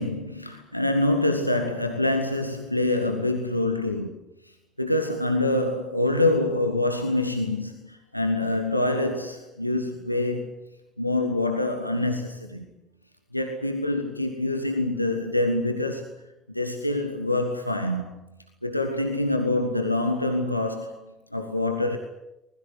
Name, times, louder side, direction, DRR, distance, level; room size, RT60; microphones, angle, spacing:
voice 1, 0.0-4.2 4.8-10.5 11.0-12.6 13.3-16.1 16.5-18.1 18.6-22.0, left 2 dB, 90° left, 5 dB, 1.5 m, -26 dB
24.5 x 20.5 x 8.3 m, 0.92 s
figure-of-eight pair, 55°, 0 cm